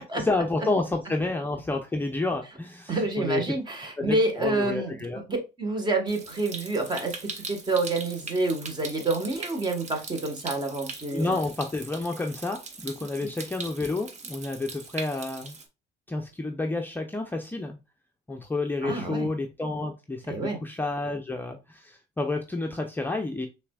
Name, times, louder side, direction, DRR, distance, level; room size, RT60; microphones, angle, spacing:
voice 1, 0.0-3.6 4.0-5.2 11.1-15.6 16.1-17.8 18.3-23.5, left 2 dB, 10° left, 0.5 m, -30 dB
voice 2, 2.9-4.9 5.3-11.3 18.8-19.3 20.3-20.6, right 2 dB, 25° right, 1.3 m, -28 dB
Stream, 6.1-15.6, right 4 dB, 45° right, 1.0 m, -41 dB
5.8 x 3.4 x 2.3 m
cardioid pair, 110°, 17 cm